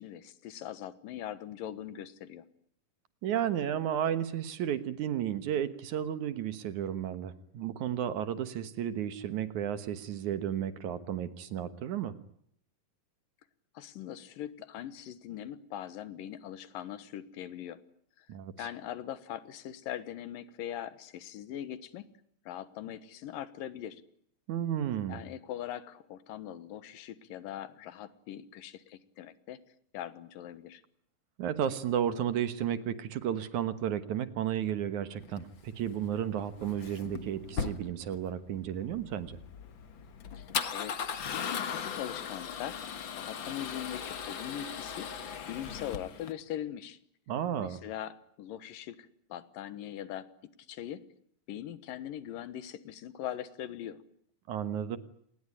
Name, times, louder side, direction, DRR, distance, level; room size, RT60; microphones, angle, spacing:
voice 1, 0.0-2.4 13.7-17.8 18.2-18.3 18.6-22.1 22.5-24.0 25.1-29.6 29.9-30.8 40.3-41.0 41.3-42.8 43.1-45.1 45.5-47.0 47.6-50.3 50.7-51.0 51.5-54.0, left 11 dB, 80° left, 14 dB, 3.0 m, -41 dB
voice 2, 3.2-12.1 18.3-18.7 24.5-25.2 31.4-39.4 47.3-47.8 54.5-55.0, right 9 dB, 65° right, 12 dB, 2.5 m, -33 dB
Male speech man speaking / Car / Engine starting, 35.2-46.3, left 7 dB, 50° left, 1.6 m, -38 dB
27.0 x 20.0 x 9.8 m, 0.69 s
omnidirectional pair, 3.9 m